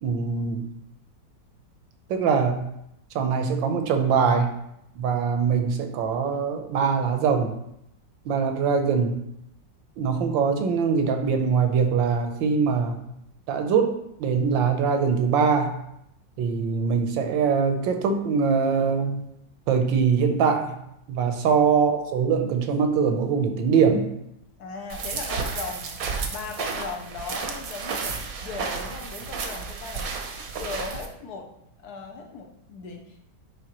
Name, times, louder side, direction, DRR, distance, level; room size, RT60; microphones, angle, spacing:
voice 1, 0.0-0.7 2.1-2.6 3.1-4.5 4.9-7.5 8.2-9.2 10.0-13.0 13.5-13.9 14.2-15.7 16.4-19.2 19.7-20.7 21.1-24.1, right 6 dB, 80° right, 5 dB, 1.5 m, -22 dB
voice 2, 24.6-26.0 26.3-31.5 31.8-33.2, left 4 dB, 65° left, 3 dB, 1.1 m, -38 dB
sound 1, 24.9-31.1, right 5 dB, 60° right, 1.0 m, -32 dB
10.0 x 3.6 x 3.0 m, 0.79 s
omnidirectional pair, 2.0 m